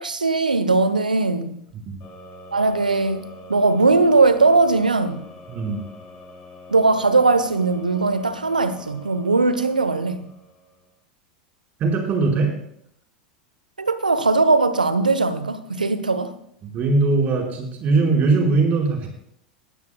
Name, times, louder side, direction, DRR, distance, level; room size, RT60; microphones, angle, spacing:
voice 1, 0.0-1.6 2.5-3.2 3.5-5.2 6.7-10.3 13.8-16.3, right 3 dB, 85° right, 0.9 m, -19 dB
sound 1, 2.0-10.9, equal, 45° left, 6.6 m, -44 dB
voice 2, 5.5-5.8 11.8-12.5 16.6-19.1, right 3 dB, 40° right, 4.8 m, -20 dB
19.0 x 14.5 x 2.3 m
figure-of-eight pair, 85°, 4 cm